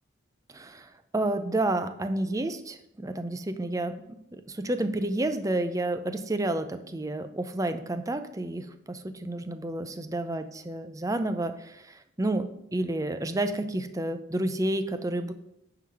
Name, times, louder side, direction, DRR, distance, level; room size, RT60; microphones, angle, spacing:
voice 1, 0.5-4.0 4.3-15.3, right 1 dB, 15° right, 9 dB, 0.5 m, -30 dB
9.3 x 3.9 x 5.8 m, 0.80 s
head